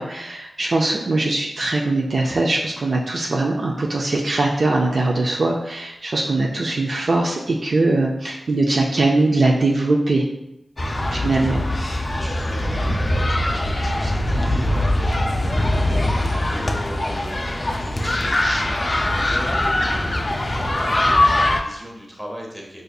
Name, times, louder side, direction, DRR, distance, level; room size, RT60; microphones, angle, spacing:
voice 1, 0.0-10.3 11.1-11.6, right 2 dB, 55° right, -1 dB, 0.4 m, -21 dB
sound 1, 10.8-21.6, left 1 dB, 30° left, 0.3 m, -21 dB
voice 2, 11.1-11.8 12.1-22.8, equal, 10° right, -1 dB, 0.8 m, -38 dB
5.0 x 2.6 x 2.3 m, 0.88 s
wide cardioid pair, 100°, 0 cm